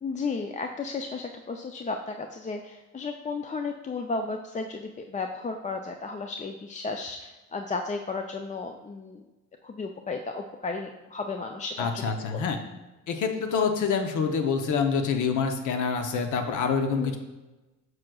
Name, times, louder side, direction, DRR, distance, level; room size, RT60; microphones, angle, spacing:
voice 1, 0.0-9.2 9.6-12.0 12.3-12.4 16.9-17.2, left 4 dB, 25° left, 5 dB, 0.4 m, -34 dB
voice 2, 11.8-12.6 13.1-17.2, left 5 dB, 80° left, 6 dB, 0.8 m, -26 dB
7.4 x 6.2 x 2.3 m, 1.1 s
cardioid pair, 90°, 30 cm